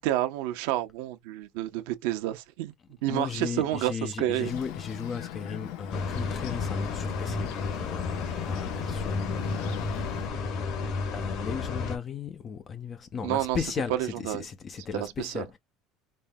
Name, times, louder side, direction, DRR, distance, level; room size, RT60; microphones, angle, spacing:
voice 1, 0.0-2.7 3.0-4.5 13.2-13.6 14.0-14.4 14.9-15.4, right 14 dB, 85° right, 0.9 m, -29 dB
voice 2, 3.0-9.9 11.1-15.6, left 6 dB, 30° left, 0.5 m, -36 dB
Bird, 4.4-10.3, left 12 dB, 85° left, 0.9 m, -39 dB
sound 1, 5.9-12.0, left 4 dB, 55° left, 1.7 m, -32 dB
5.2 x 2.7 x 2.2 m
cardioid pair, 150°, 0 cm